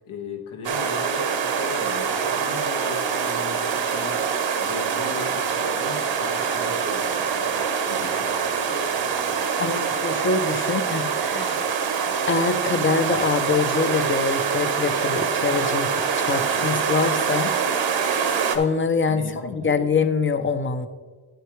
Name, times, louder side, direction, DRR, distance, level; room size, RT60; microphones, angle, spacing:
voice 1, 0.1-4.2 4.6-9.9 19.1-19.9, left 5 dB, 75° left, 3 dB, 1.6 m, -38 dB
sound 1, 0.6-18.6, right 6 dB, 65° right, 1.1 m, -25 dB
voice 2, 9.6-11.7 12.3-17.5 18.5-19.2 19.5-20.9, left 5 dB, 25° left, 10 dB, 0.7 m, -24 dB
10.0 x 7.9 x 3.2 m, 1.4 s
cardioid pair, 90°, 49 cm